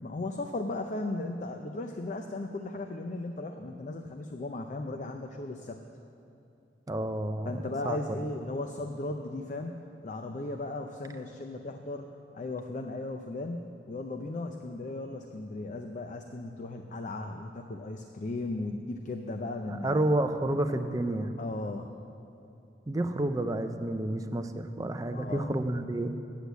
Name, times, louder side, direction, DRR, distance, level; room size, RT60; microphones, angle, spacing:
voice 1, 0.0-5.8 7.5-9.7 10.0-12.1 12.3-20.1 21.4-21.9 25.1-25.5, left 2 dB, 40° left, 5 dB, 0.4 m, -36 dB
voice 2, 6.9-8.0 19.7-21.3 22.9-26.2, right 1 dB, 20° right, 7 dB, 0.4 m, -30 dB
8.2 x 8.1 x 8.1 m, 2.7 s
head